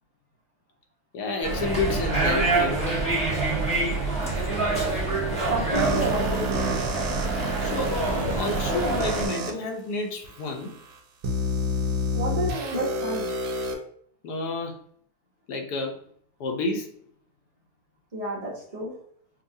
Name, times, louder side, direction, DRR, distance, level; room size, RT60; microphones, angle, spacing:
voice 1, 1.1-2.8 7.6-8.0 8.3-10.7 14.2-14.8 15.5-16.0 16.4-16.9, left 3 dB, 75° left, 2 dB, 1.3 m, -30 dB
sound 1, 1.4-9.2, right 2 dB, 5° left, 0.9 m, -26 dB
voice 2, 5.5-7.0 12.1-13.3 18.1-18.9, right 1 dB, 40° right, -6 dB, 0.5 m, -30 dB
sound 2, 5.7-9.5 10.2-10.3 11.2-13.7, equal, 70° right, 1.1 m, -29 dB
5.4 x 2.3 x 2.6 m, 0.62 s
omnidirectional pair, 1.8 m